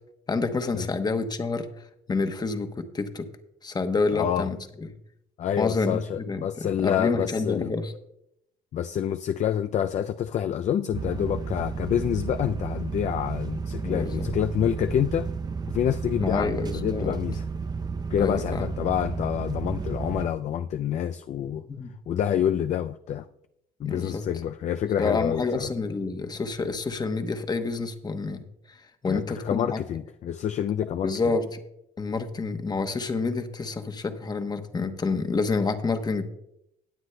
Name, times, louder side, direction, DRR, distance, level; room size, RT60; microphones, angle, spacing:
voice 1, 0.3-1.7 2.1-3.3 3.6-4.9 5.6-7.9 13.8-14.3 16.2-17.2 18.2-18.7 21.7-21.9 23.8-24.2 25.0-29.8 31.0-31.6 32.0-36.3, left 4 dB, 25° left, 8 dB, 1.0 m, -28 dB
voice 2, 4.1-4.5 5.4-7.7 8.7-15.3 15.7-17.4 18.1-21.6 22.1-23.3 23.8-25.7 29.1-31.1, left 9 dB, 45° left, 9 dB, 0.4 m, -27 dB
sound 1, 10.9-20.3, right 5 dB, 25° right, 0.5 m, -32 dB
19.5 x 7.9 x 2.2 m, 0.81 s
cardioid pair, 110°, 17 cm